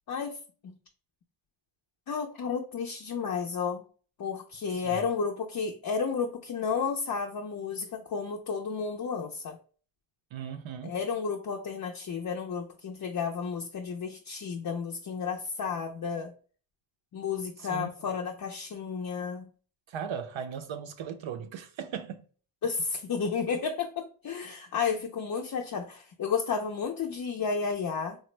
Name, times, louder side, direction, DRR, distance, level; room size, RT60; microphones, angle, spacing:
voice 1, 0.1-0.4 0.6-0.7 2.1-3.8 4.2-9.6 10.8-16.3 17.1-19.5 22.6-28.2, left 5 dB, 45° left, 0.5 m, -32 dB
voice 2, 10.3-11.0 17.7-17.9 19.9-22.2, right 7 dB, 70° right, 0.5 m, -37 dB
3.2 x 2.1 x 3.1 m
cardioid pair, 45°, 50 cm